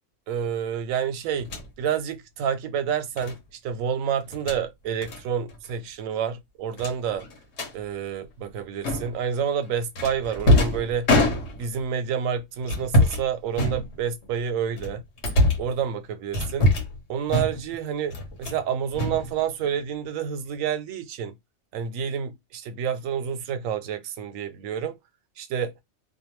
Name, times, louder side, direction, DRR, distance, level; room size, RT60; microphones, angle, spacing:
voice 1, 0.3-1.5 1.8-7.3 7.7-11.1 11.5-15.0 15.6-16.7 17.1-21.4 21.7-25.0 25.4-25.7, right 8 dB, 90° right, 1.0 m, -29 dB
sound 1, 1.4-1.7 3.2-3.4 4.2-4.6 5.0-5.2 5.5-5.7 6.0-6.1 6.8-7.7 8.8-9.3 10.0-11.8 12.6-13.3 13.5-14.3 14.8-15.7 16.3-17.0 17.3-17.8 18.1-18.6 18.9-19.8, left 1 dB, 60° left, 1.1 m, -24 dB
2.5 x 2.2 x 3.0 m
omnidirectional pair, 1.3 m